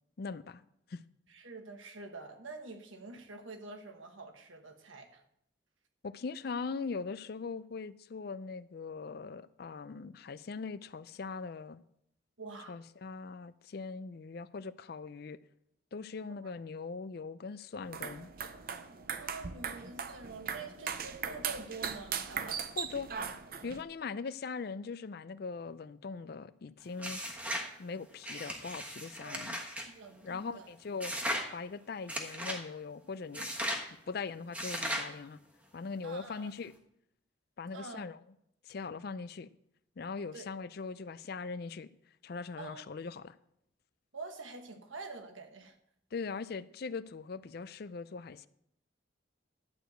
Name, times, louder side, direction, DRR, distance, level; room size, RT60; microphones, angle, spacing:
voice 1, 0.2-0.6 0.9-1.0 6.0-11.8 12.7-15.4 15.9-18.3 22.8-23.1 23.6-27.2 27.8-29.6 30.2-31.1 31.5-33.5 34.1-35.4 35.7-36.7 37.6-38.2 38.6-39.5 40.0-41.9 42.2-43.4 46.1-48.5, left 4 dB, 55° left, 0.4 m, -41 dB
voice 2, 1.3-5.2 12.4-12.8 16.4-16.5 19.2-22.8 29.2-29.6 29.8-30.7 36.0-36.5 37.7-38.0 40.3-40.5 42.6-42.8 44.1-45.7, right 3 dB, 90° right, 1.3 m, -46 dB
sound 1, 17.8-23.8, right 7 dB, 50° right, 0.6 m, -39 dB
sound 2, 27.0-27.7 28.2-29.9 31.0-31.5 32.1-32.6 33.3-33.9 34.5-35.1, equal, 5° right, 1.3 m, -36 dB
11.5 x 4.9 x 7.8 m
head